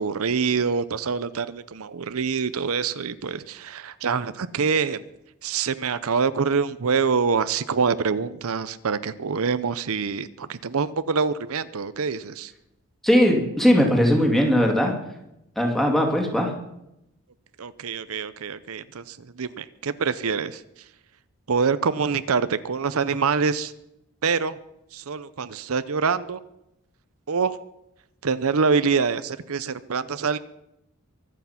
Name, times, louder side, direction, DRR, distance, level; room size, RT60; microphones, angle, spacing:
voice 1, 0.0-5.0 5.4-12.5 17.6-20.6 21.5-23.7 24.2-24.6 24.9-26.4 27.3-27.6 28.2-30.4, right 5 dB, 75° right, 14 dB, 0.6 m, -25 dB
voice 2, 13.0-14.9 15.6-16.5, equal, ahead, 1 dB, 2.4 m, -19 dB
23.5 x 8.4 x 5.8 m, 0.84 s
head